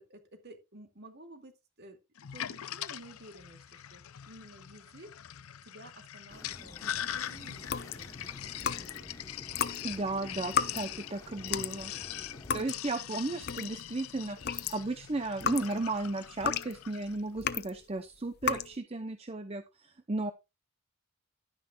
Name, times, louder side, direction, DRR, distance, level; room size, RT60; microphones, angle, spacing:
voice 1, 0.0-2.0 2.3-5.1 5.6-9.6 13.1-13.4, right 1 dB, 50° right, 5 dB, 2.4 m, -53 dB
Sink (filling or washing), 2.2-17.2, left 11 dB, 90° left, 0.6 m, -42 dB
sound 1, 6.3-12.7, left 1 dB, 15° left, 1.1 m, -51 dB
sound 2, 7.6-9.1 9.5-13.9 14.3-17.8 18.3-18.8, left 7 dB, 50° left, 0.6 m, -34 dB
voice 2, 9.8-11.9 12.5-20.3, right 2 dB, 30° right, 9 dB, 0.7 m, -35 dB
11.5 x 9.9 x 2.4 m, 0.24 s
head